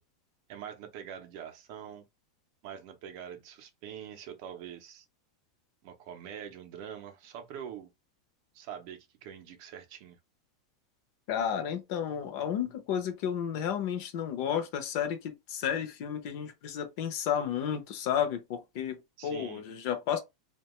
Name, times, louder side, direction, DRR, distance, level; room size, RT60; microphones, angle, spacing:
voice 1, 0.5-2.0 2.6-5.0 5.8-7.9 8.5-10.2 19.2-19.6, right 9 dB, 45° right, 0.5 m, -44 dB
voice 2, 11.3-20.2, left 9 dB, 45° left, 0.6 m, -32 dB
2.6 x 2.2 x 2.9 m
supercardioid pair, 165°, 3 cm